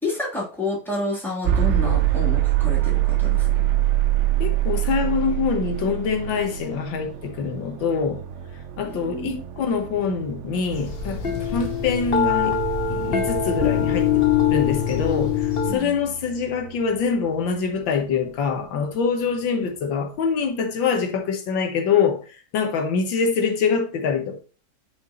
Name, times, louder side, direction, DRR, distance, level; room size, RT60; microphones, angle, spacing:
voice 1, 0.0-3.5 8.8-9.4 11.2-11.4 15.7-16.0, left 2 dB, ahead, 3.1 m, -29 dB
sound 1, 1.4-17.4, right 14 dB, 85° right, 0.6 m, -26 dB
voice 2, 4.4-8.2 8.8-11.2 11.5-12.6 12.9-22.2 22.5-24.4, left 5 dB, 85° left, 1.9 m, -24 dB
sound 2, 10.7-15.7, left 8 dB, 40° left, 0.9 m, -23 dB
8.5 x 5.2 x 3.0 m
omnidirectional pair, 2.0 m